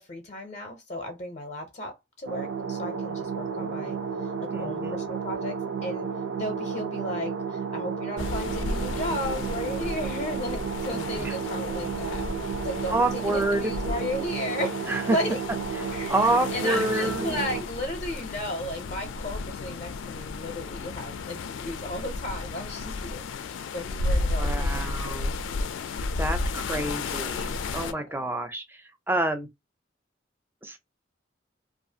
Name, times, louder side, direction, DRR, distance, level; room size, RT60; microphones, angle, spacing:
voice 1, 0.0-4.0 4.2-6.1 6.4-14.8 15.1-15.4 15.9-24.9 27.7-28.0, left 1 dB, 40° left, 0.5 m, -35 dB
sound 1, 2.3-17.6, right 6 dB, 85° right, 0.5 m, -32 dB
voice 2, 4.5-5.0 10.9-11.4 12.9-13.7 14.8-15.2 15.8-17.4 24.4-25.3 26.2-29.5 30.6-30.8, right 2 dB, 10° right, 0.4 m, -28 dB
sound 2, 8.2-27.9, left 3 dB, 90° left, 0.4 m, -33 dB
2.4 x 2.4 x 2.6 m
head